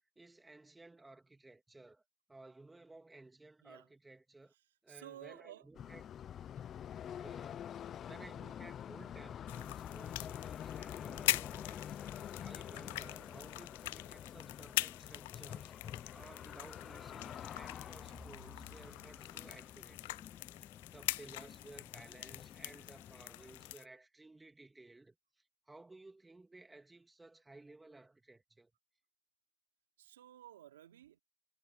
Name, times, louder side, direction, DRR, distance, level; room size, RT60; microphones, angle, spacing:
voice 1, 0.2-2.0 2.3-4.5 4.8-6.0 7.2-7.7 8.1-15.7 16.1-20.4 20.9-25.1 25.7-28.7, right 2 dB, 5° right, 3.1 m, -57 dB
voice 2, 4.9-5.6 30.0-31.2, right 12 dB, 80° right, 3.1 m, -53 dB
sound 1, 5.7-23.7, left 9 dB, 25° left, 0.7 m, -47 dB
sound 2, 9.5-23.8, left 20 dB, 60° left, 0.3 m, -43 dB
sound 3, 15.8-21.3, right 27 dB, 55° right, 7.5 m, -66 dB
hypercardioid pair, 130°, 0 cm